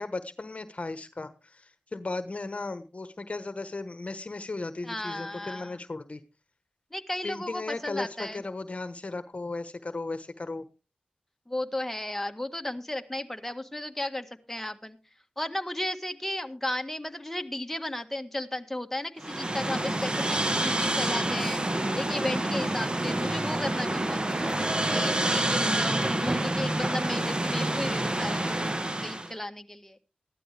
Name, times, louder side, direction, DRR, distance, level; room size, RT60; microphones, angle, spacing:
voice 1, 0.0-6.2 7.2-10.6 20.8-21.2, left 3 dB, 45° left, 12 dB, 1.2 m, -36 dB
voice 2, 4.8-5.8 6.9-8.4 11.5-15.0 15.4-21.6 21.9-28.7 29.0-30.0, left 1 dB, 10° left, 5 dB, 1.7 m, -34 dB
sound 1, 19.2-29.3, right 1 dB, 30° right, 1.4 m, -28 dB
15.0 x 12.0 x 3.4 m, 0.31 s
cardioid pair, 40°, 3 cm